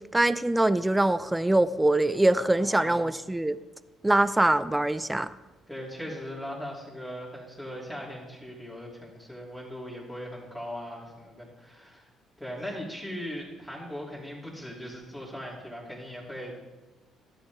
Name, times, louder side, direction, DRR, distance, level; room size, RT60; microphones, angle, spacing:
voice 1, 0.1-3.6 4.0-5.3, right 1 dB, 10° right, 14 dB, 0.3 m, -23 dB
voice 2, 2.5-3.1 5.7-12.1 12.4-16.6, equal, 5° left, -5 dB, 2.9 m, -39 dB
13.0 x 7.1 x 3.6 m, 1.2 s
cardioid pair, 80°, 0 cm